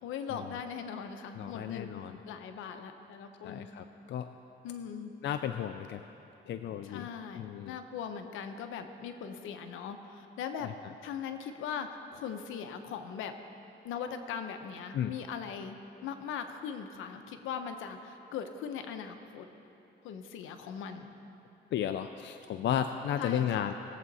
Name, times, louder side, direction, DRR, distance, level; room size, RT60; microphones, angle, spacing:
voice 1, 0.0-3.7 4.6-5.1 6.8-10.7 11.0-13.3 13.8-15.8 16.0-19.5 20.0-21.1 23.2-23.7, left 7 dB, 85° left, 7 dB, 0.9 m, -40 dB
voice 2, 1.4-2.2 3.4-4.3 5.2-6.0 6.5-7.1 7.3-7.8 10.6-10.7 14.9-15.1 21.7-23.7, left 9 dB, 65° left, 8 dB, 0.5 m, -33 dB
20.5 x 7.7 x 4.1 m, 2.9 s
cardioid pair, 90°, 20 cm